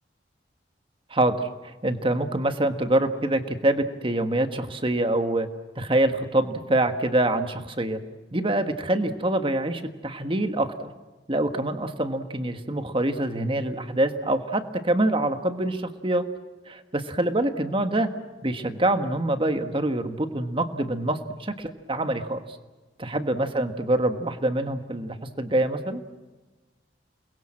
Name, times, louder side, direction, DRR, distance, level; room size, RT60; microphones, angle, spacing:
voice 1, 1.1-5.5 5.7-8.0 8.3-10.9 11.3-16.2 16.7-18.1 18.4-22.4 23.0-26.0, right 1 dB, 30° right, 8 dB, 1.5 m, -25 dB
29.0 x 21.5 x 7.6 m, 1.2 s
head